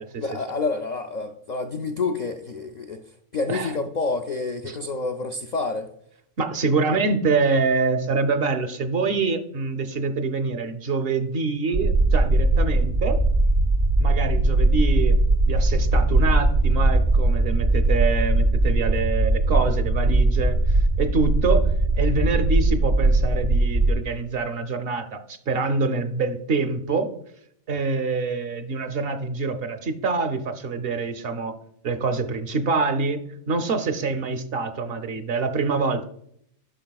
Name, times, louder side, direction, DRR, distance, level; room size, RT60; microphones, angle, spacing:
voice 1, 0.2-3.0 3.3-5.9, left 3 dB, 80° left, 5 dB, 0.4 m, -28 dB
voice 2, 6.4-13.2 14.0-15.2 15.5-27.1 27.7-31.6 31.8-36.0, right 4 dB, 60° right, 8 dB, 0.7 m, -25 dB
sound 1, 11.7-23.9, right 2 dB, 85° right, 2.0 m, -20 dB
10.0 x 6.1 x 2.3 m, 0.70 s
omnidirectional pair, 1.3 m